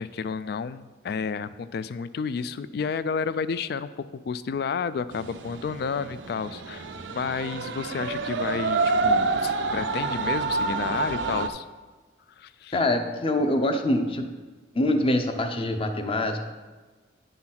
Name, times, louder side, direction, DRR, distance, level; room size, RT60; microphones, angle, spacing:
voice 1, 0.0-11.7 12.4-12.8, left 5 dB, 60° left, 15 dB, 0.3 m, -31 dB
sound 1, 5.1-11.5, right 3 dB, 85° right, 0.5 m, -28 dB
voice 2, 12.7-14.3 14.7-16.4, left 1 dB, 30° left, 6 dB, 0.6 m, -24 dB
9.6 x 4.0 x 5.8 m, 1.3 s
head